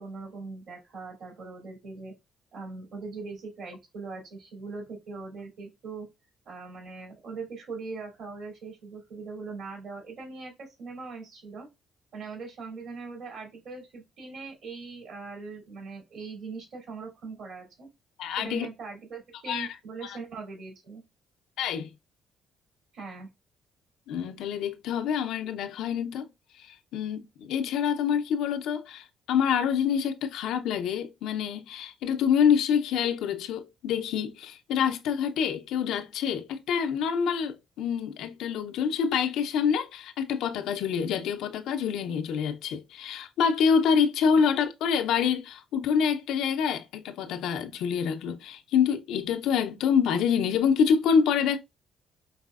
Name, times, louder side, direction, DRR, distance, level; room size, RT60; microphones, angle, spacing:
voice 1, 0.0-2.1 2.5-6.1 6.5-11.7 12.1-17.9 18.4-21.0 22.9-23.3, right 4 dB, 70° right, 2.6 m, -41 dB
voice 2, 18.2-18.7 19.5-19.7 20.0-20.2 21.6-21.9 24.1-26.3 26.6-51.6, left 7 dB, 75° left, 0.5 m, -26 dB
4.7 x 3.3 x 2.4 m
supercardioid pair, 60°, 0 cm